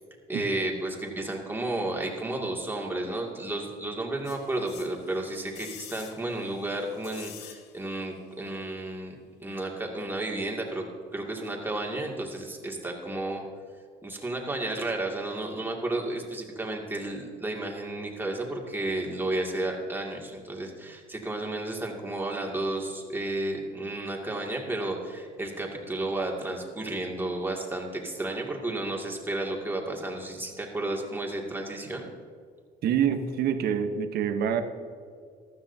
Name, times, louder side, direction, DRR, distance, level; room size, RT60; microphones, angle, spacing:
voice 1, 0.3-9.1 9.4-10.8 11.1-13.4 14.0-32.1, right 2 dB, 10° right, 0 dB, 2.3 m, -32 dB
sound 1, 4.2-8.0 8.3-8.4, left 10 dB, 85° left, 1.0 m, -48 dB
voice 2, 32.8-34.6, right 8 dB, 65° right, 7 dB, 1.0 m, -26 dB
15.0 x 13.0 x 2.8 m, 2.1 s
cardioid pair, 110°, 17 cm